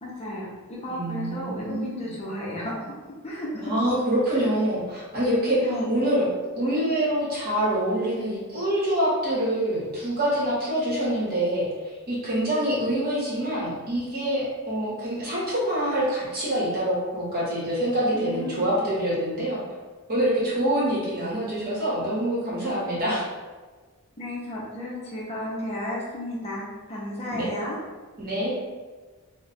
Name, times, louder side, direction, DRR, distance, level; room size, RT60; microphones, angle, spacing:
voice 1, 0.0-2.7 3.2-3.7 4.3-4.5 5.6-6.0 18.1-18.9 24.2-27.8, left 1 dB, 30° left, -5 dB, 0.6 m, -33 dB
voice 2, 0.9-2.1 3.6-6.3 6.5-19.6 20.1-23.3 27.3-27.5 28.2-28.5, right 1 dB, 45° right, -7 dB, 1.1 m, -26 dB
2.3 x 2.1 x 3.9 m, 1.4 s
head